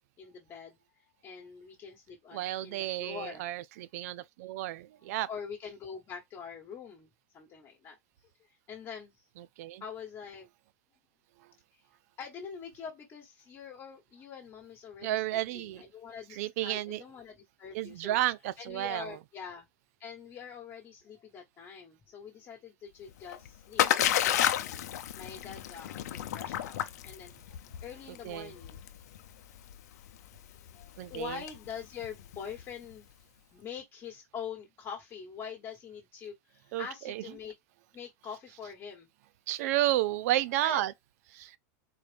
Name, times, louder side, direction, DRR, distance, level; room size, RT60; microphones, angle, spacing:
voice 1, 0.2-0.8 1.2-3.4 5.0-7.1 7.3-7.9 8.7-9.2 9.8-10.5 12.2-18.2 18.6-19.7 20.0-23.9 24.6-27.3 27.8-28.8 30.7-33.1 33.5-37.5 37.9-39.1 40.6-40.8, left 7 dB, 30° left, 1.3 m, -44 dB
voice 2, 2.3-5.3 9.4-9.8 15.0-15.8 16.4-17.0 17.7-19.2 28.2-28.5 31.0-31.4 36.7-37.2 39.5-40.9 41.3-41.5, right 15 dB, 65° right, 0.4 m, -32 dB
Splash splatter, 23.1-32.9, left 12 dB, 85° left, 0.6 m, -32 dB
4.3 x 2.4 x 3.4 m
supercardioid pair, 140°, 9 cm